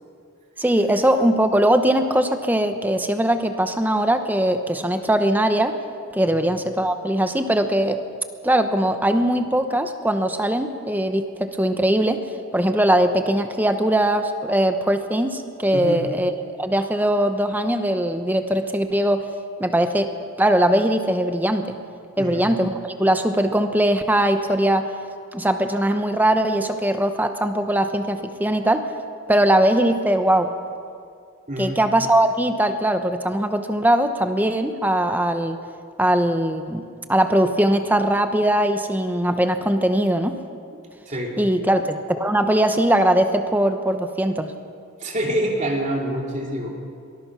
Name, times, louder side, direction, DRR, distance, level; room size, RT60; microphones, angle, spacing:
voice 1, 0.6-5.8 6.1-8.0 8.4-12.2 12.5-19.3 19.6-20.1 20.4-21.8 22.2-24.9 25.3-28.9 29.3-30.5 31.6-35.6 36.0-36.8 37.1-40.4 41.4-44.5, right 1 dB, 10° right, 7 dB, 0.9 m, -20 dB
voice 2, 31.5-31.8 41.1-41.4 45.0-46.7, equal, 35° right, 0 dB, 3.0 m, -26 dB
23.5 x 19.5 x 6.1 m, 2.4 s
head